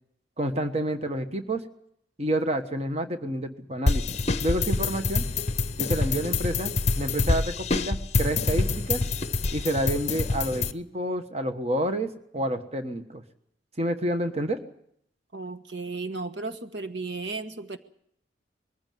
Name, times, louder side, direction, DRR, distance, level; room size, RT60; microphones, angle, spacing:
voice 1, 0.4-1.6 2.2-4.0 4.4-5.3 5.8-9.0 9.5-13.2 13.8-14.6, right 1 dB, 35° right, 7 dB, 1.4 m, -29 dB
sound 1, 3.9-10.7, left 3 dB, 35° left, 0.7 m, -26 dB
voice 2, 15.3-17.8, right 3 dB, 75° right, 9 dB, 1.2 m, -34 dB
21.5 x 15.0 x 9.3 m, 0.72 s
head